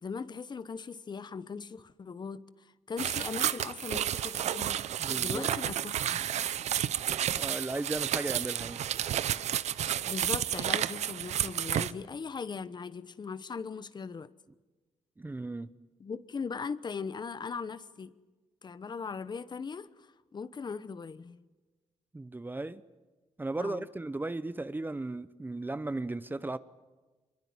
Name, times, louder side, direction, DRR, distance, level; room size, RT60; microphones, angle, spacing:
voice 1, 0.0-6.2 9.7-14.3 16.0-18.1 18.6-21.4 23.6-23.9, left 5 dB, 40° left, 1.0 m, -39 dB
sound 1, 3.0-11.9, right 10 dB, 80° right, 0.8 m, -31 dB
voice 2, 5.0-5.5 7.3-8.8 15.2-15.7 22.1-22.8 23.4-26.6, right 2 dB, 15° right, 0.8 m, -36 dB
25.0 x 22.5 x 9.6 m
cardioid pair, 100°, 12 cm